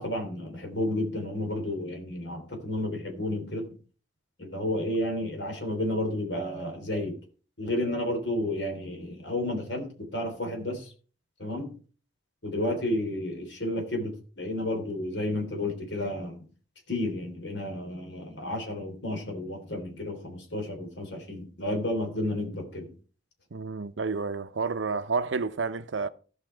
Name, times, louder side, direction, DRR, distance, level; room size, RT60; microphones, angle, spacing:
voice 1, 0.0-3.7 4.4-7.2 7.6-10.9 11.4-11.8 12.4-16.5 16.9-22.9, left 1 dB, 75° left, 3.2 m, -31 dB
voice 2, 23.5-26.1, right 4 dB, 90° right, 0.7 m, -30 dB
15.5 x 5.7 x 4.6 m
head